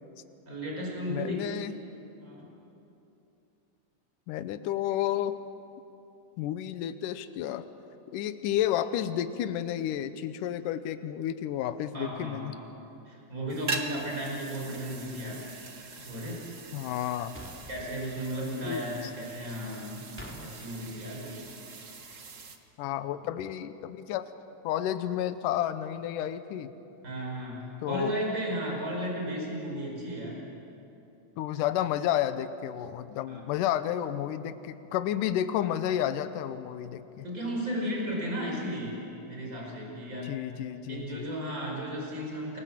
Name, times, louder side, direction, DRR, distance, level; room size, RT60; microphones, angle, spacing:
voice 1, 0.5-1.4 2.2-2.5 11.9-12.6 13.1-15.4 16.0-16.9 17.7-20.1 20.4-21.4 27.0-30.4 33.3-33.4 37.2-39.0 39.3-40.3 40.9-42.6, equal, 25° right, -1 dB, 5.8 m, -35 dB
voice 2, 1.1-1.7 4.3-5.4 6.4-7.7 8.1-12.5 16.7-17.3 18.6-18.9 22.8-24.3 24.6-26.7 27.8-28.1 31.4-37.2 40.2-41.3, left 11 dB, 80° left, 11 dB, 2.4 m, -31 dB
sound 1, 13.5-22.6, right 3 dB, 60° right, 0.8 m, -42 dB
sound 2, 17.3-17.9 20.2-20.4, equal, 5° left, 2.8 m, -43 dB
29.0 x 22.0 x 7.5 m, 2.9 s
omnidirectional pair, 3.8 m